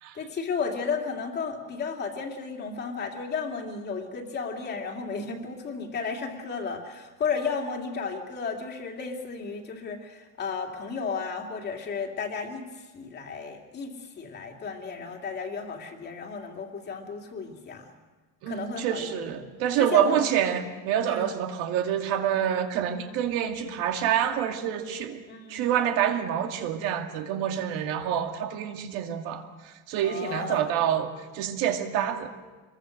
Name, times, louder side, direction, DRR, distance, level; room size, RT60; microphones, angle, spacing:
voice 1, 0.1-12.7 12.9-17.9 18.5-19.1 19.8-20.3 21.1-21.3 25.3-25.7 30.0-30.7, left 5 dB, 25° left, 2 dB, 2.6 m, -33 dB
voice 2, 18.4-25.2 25.5-32.3, right 10 dB, 60° right, 4 dB, 2.3 m, -27 dB
26.5 x 22.5 x 6.6 m, 1.3 s
cardioid pair, 170°, 41 cm